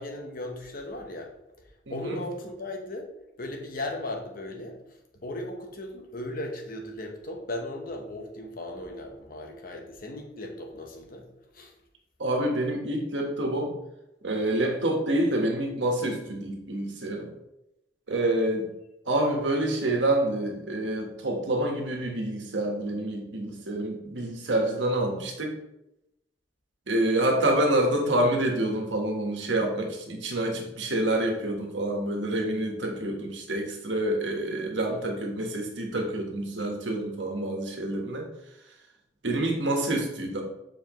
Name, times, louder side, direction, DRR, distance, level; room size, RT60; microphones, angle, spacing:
voice 1, 0.0-1.3 1.9-3.1 3.4-4.8 5.2-11.3 11.5-11.7 18.1-18.4, left 1 dB, 55° left, 2 dB, 1.1 m, -37 dB
voice 2, 1.9-2.2 12.2-13.7 14.2-17.3 18.1-18.7 19.0-25.5 26.9-38.3 39.2-40.4, right 1 dB, 85° right, 1 dB, 1.4 m, -27 dB
7.3 x 4.8 x 3.1 m, 0.89 s
head